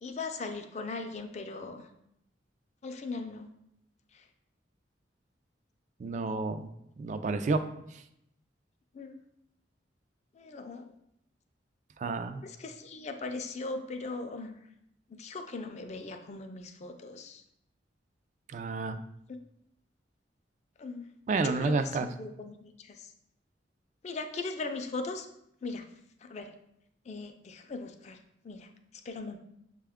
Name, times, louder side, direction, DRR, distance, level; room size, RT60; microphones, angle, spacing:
voice 1, 0.0-1.9 2.8-3.5 4.1-4.2 8.9-9.2 10.4-11.0 12.4-14.6 15.1-17.4 20.8-21.0 21.4-23.1 24.0-25.3 25.6-25.9 26.2-26.5 27.1-28.2 28.4-28.7 29.0-29.4, left 3 dB, 40° left, 6 dB, 0.4 m, -39 dB
voice 2, 6.0-6.7 7.0-7.6 12.0-12.4 18.5-19.0 21.3-22.1, right 3 dB, 40° right, 9 dB, 0.3 m, -30 dB
6.7 x 2.2 x 3.5 m, 0.77 s
head